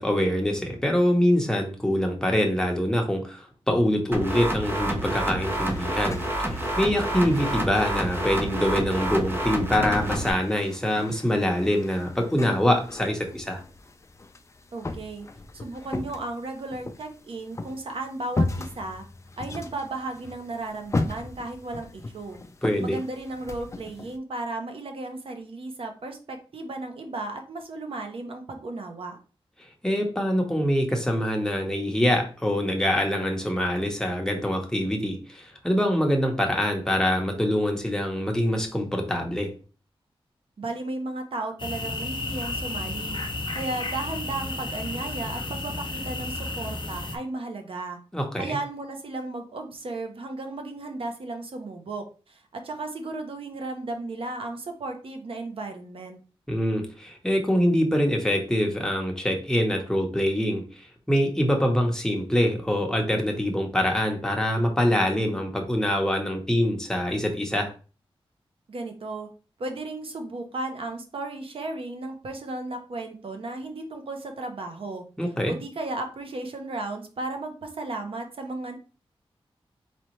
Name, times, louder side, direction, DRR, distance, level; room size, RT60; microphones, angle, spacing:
voice 1, 0.0-13.6 22.6-23.0 29.8-39.5 48.1-48.4 56.5-67.7 75.2-75.5, equal, 5° left, 1 dB, 1.0 m, -24 dB
sound 1, 4.1-10.3, right 1 dB, 20° right, 0.8 m, -28 dB
sound 2, 5.5-24.2, left 2 dB, 30° left, 0.4 m, -37 dB
voice 2, 14.7-15.3 15.5-19.0 19.4-22.4 22.8-29.2 40.6-43.2 43.5-48.0 48.4-56.2 68.7-69.3 69.6-75.0 75.5-78.7, right 2 dB, 65° right, 5 dB, 0.9 m, -35 dB
sound 3, 41.6-47.2, left 2 dB, 50° left, 0.9 m, -32 dB
4.0 x 3.4 x 3.1 m, 0.36 s
wide cardioid pair, 115°, 10 cm